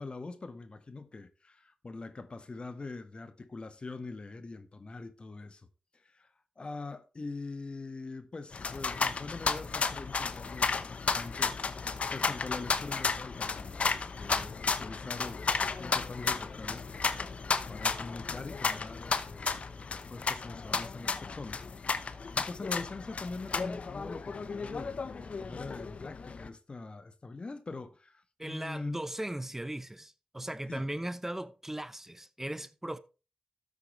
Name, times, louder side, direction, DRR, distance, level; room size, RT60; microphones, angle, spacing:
voice 1, 0.0-5.7 5.9-29.0 30.7-30.9, left 3 dB, 50° left, 1.5 m, -43 dB
sound 1, 8.5-26.5, left 5 dB, 65° left, 0.9 m, -33 dB
voice 2, 28.4-33.0, right 1 dB, 15° right, 0.9 m, -38 dB
13.0 x 8.2 x 3.2 m
cardioid pair, 40°, 2 cm